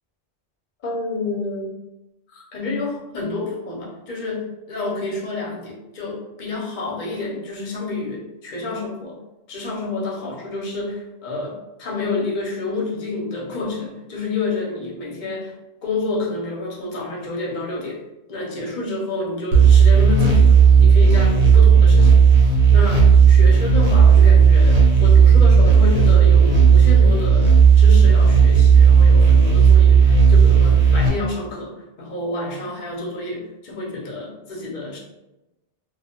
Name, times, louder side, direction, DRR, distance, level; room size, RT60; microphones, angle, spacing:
voice 1, 0.8-1.7 2.3-9.2 9.5-15.5 15.8-18.0 18.3-22.2 22.7-35.0, left 2 dB, 55° left, -3 dB, 0.7 m, -29 dB
sound 1, 19.5-31.1, right 6 dB, 80° right, 0.9 m, -12 dB
2.1 x 2.1 x 2.8 m, 0.97 s
omnidirectional pair, 1.1 m